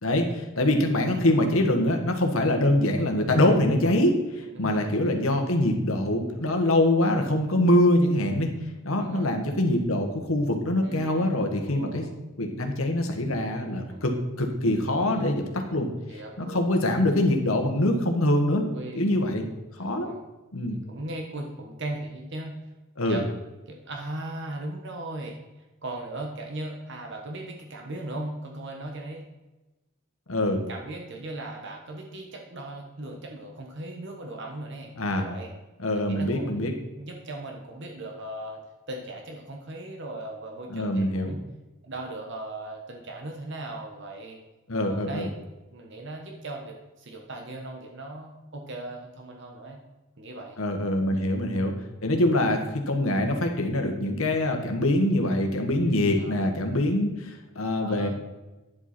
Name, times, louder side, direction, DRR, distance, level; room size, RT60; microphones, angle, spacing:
voice 1, 0.0-8.5 8.8-12.1 12.4-15.9 16.4-18.7 18.9-19.5 19.8-20.1 20.5-20.8 23.0-23.2 30.3-30.6 35.0-35.3 35.8-36.7 40.7-41.4 44.7-45.3 50.6-51.7 52.0-58.1, left 1 dB, 75° left, 4 dB, 1.4 m, -24 dB
voice 2, 4.5-4.8 9.0-9.3 10.8-12.1 13.9-14.0 14.9-15.4 16.1-16.7 18.7-19.1 19.8-20.3 20.6-22.6 23.0-23.3 23.7-29.3 30.7-34.9 35.2-35.5 35.9-36.7 37.0-41.4 41.8-44.4 44.8-45.4 45.7-49.8 50.2-50.6 51.1-51.2 54.0-54.2 55.9-56.5 57.7-58.1, right 1 dB, 55° right, 1 dB, 1.2 m, -38 dB
10.0 x 7.7 x 4.3 m, 1.1 s
head